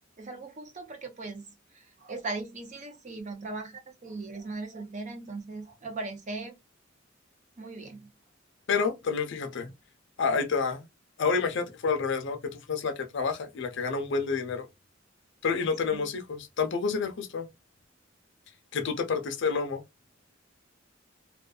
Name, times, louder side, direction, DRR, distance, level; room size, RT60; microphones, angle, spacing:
voice 1, 0.2-1.4 1.7-6.6 7.6-8.1, right 3 dB, 40° right, 0.6 m, -38 dB
voice 2, 8.7-9.7 10.2-10.9 11.2-14.7 15.4-17.5 18.7-19.8, left 5 dB, 65° left, 0.5 m, -29 dB
2.5 x 2.3 x 2.3 m
head